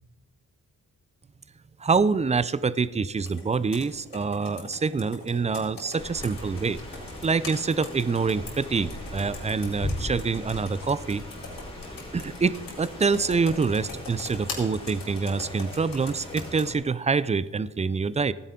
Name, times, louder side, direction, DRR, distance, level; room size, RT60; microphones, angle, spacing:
voice 1, 1.8-6.8 7.2-11.2 12.1-18.3, right 4 dB, 20° right, 17 dB, 0.4 m, -26 dB
Computer keyboard, 3.2-16.7, left 2 dB, 75° left, 3.4 m, -40 dB
Rain, 6.0-16.7, left 1 dB, 15° left, 3.0 m, -41 dB
15.5 x 9.9 x 3.8 m, 1.3 s
cardioid pair, 75°, 35 cm